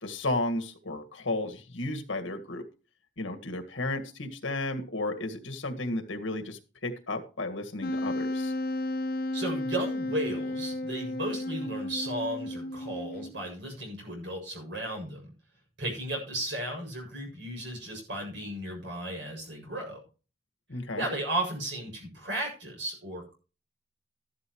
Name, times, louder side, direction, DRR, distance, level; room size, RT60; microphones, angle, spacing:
voice 1, 0.0-2.7 3.2-8.5 20.7-21.1, left 2 dB, 85° left, 7 dB, 1.9 m, -33 dB
Wind instrument woodwind instrument, 7.8-13.5, left 1 dB, 50° left, 0.9 m, -33 dB
voice 2, 9.3-15.3 15.8-20.0 20.9-23.3, right 1 dB, 70° right, 1 dB, 7.4 m, -35 dB
13.5 x 12.0 x 3.1 m, 0.35 s
head